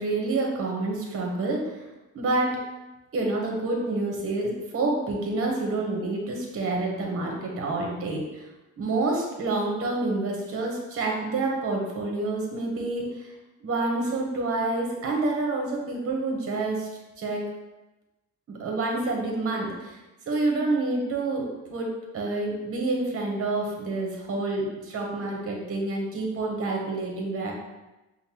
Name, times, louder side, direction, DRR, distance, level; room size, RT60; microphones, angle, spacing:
voice 1, 0.0-1.8 2.1-2.6 3.1-8.5 8.8-13.3 13.6-16.9 17.2-17.4 18.5-20.0 20.3-27.5, right 2 dB, 50° right, 0 dB, 1.0 m, -28 dB
5.1 x 2.2 x 2.9 m, 1.1 s
cardioid pair, 90°, 30 cm